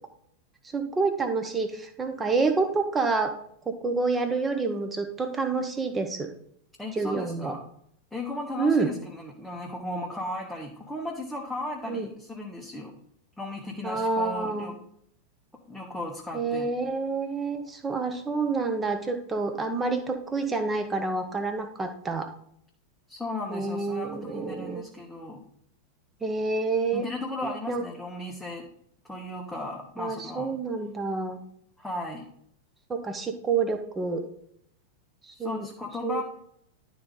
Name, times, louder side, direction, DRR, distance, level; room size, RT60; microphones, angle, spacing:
voice 1, 0.7-3.3 3.7-6.3 6.9-7.5 8.6-8.9 11.9-12.1 13.8-14.7 16.3-22.3 23.5-24.8 26.2-27.1 27.4-27.8 30.0-31.4 32.9-34.2 35.2-35.7 36.0-36.2, right 4 dB, 15° right, 7 dB, 1.1 m, -28 dB
voice 2, 6.8-7.6 8.1-12.9 13.4-14.7 15.7-16.7 23.1-25.4 26.9-28.7 29.0-30.6 31.8-32.3 35.3-36.2, left 1 dB, ahead, -3 dB, 1.2 m, -36 dB
11.5 x 4.0 x 3.8 m, 0.67 s
figure-of-eight pair, 90°, 0 cm